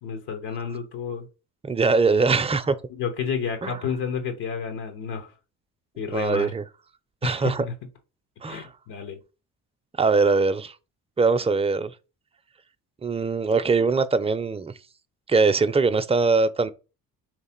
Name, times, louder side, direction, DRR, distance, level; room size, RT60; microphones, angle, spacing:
voice 1, 0.0-1.3 2.9-5.3 6.0-6.5 7.2-7.7 8.5-9.2, left 6 dB, 75° left, 1.1 m, -31 dB
voice 2, 1.6-2.8 3.6-3.7 6.1-6.6 7.2-7.6 8.4-8.7 10.0-10.7 11.2-11.9 13.0-14.7 15.3-16.7, right 4 dB, 15° right, 0.5 m, -22 dB
3.4 x 3.2 x 4.4 m
supercardioid pair, 60°, 41 cm